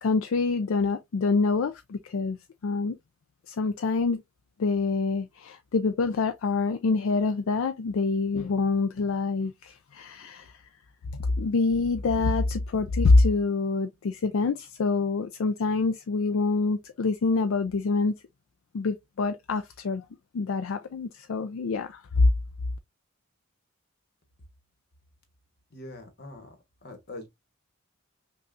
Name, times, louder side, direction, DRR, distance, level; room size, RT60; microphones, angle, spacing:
voice 1, 0.0-2.4 2.6-3.0 3.5-4.2 4.6-10.6 11.4-18.1 18.7-20.0 20.3-22.3, left 3 dB, 65° left, 0.4 m, -26 dB
voice 2, 25.7-26.6 26.8-27.3, left 2 dB, 45° left, 1.1 m, -43 dB
5.4 x 2.3 x 2.5 m
head